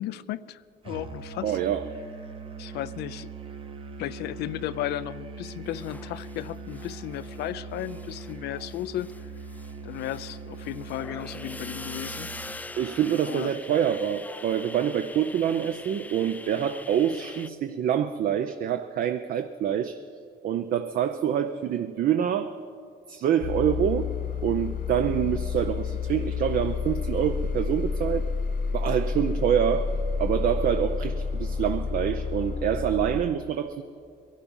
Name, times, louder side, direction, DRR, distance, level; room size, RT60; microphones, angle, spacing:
voice 1, 0.0-1.6 2.6-3.3 4.0-9.1 9.8-12.3 13.3-13.5, left 13 dB, 75° left, 15 dB, 0.5 m, -34 dB
Musical instrument, 0.8-12.7, right 4 dB, 30° right, 0.9 m, -41 dB
voice 2, 1.4-1.8 12.8-20.0 20.4-22.6 23.1-24.1 24.4-28.2 28.7-29.9 30.2-33.8, right 9 dB, 55° right, 8 dB, 0.6 m, -26 dB
sound 1, 5.6-7.5 7.7-17.5, left 2 dB, 10° left, 0.3 m, -43 dB
sound 2, 23.4-33.2, left 5 dB, 60° left, 1.3 m, -30 dB
22.0 x 11.5 x 5.4 m, 2.4 s
cardioid pair, 110°, 17 cm